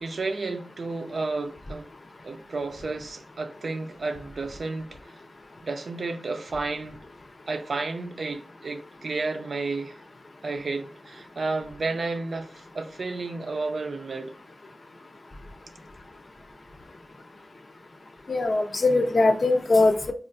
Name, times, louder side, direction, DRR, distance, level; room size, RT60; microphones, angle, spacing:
voice 1, 0.0-1.9 2.2-5.2 5.6-7.0 7.5-10.0 10.4-14.3, right 3 dB, 70° right, 0.4 m, -32 dB
voice 2, 18.3-20.1, left 2 dB, 55° left, 0.5 m, -21 dB
4.3 x 2.4 x 2.5 m
cardioid pair, 55°, 0 cm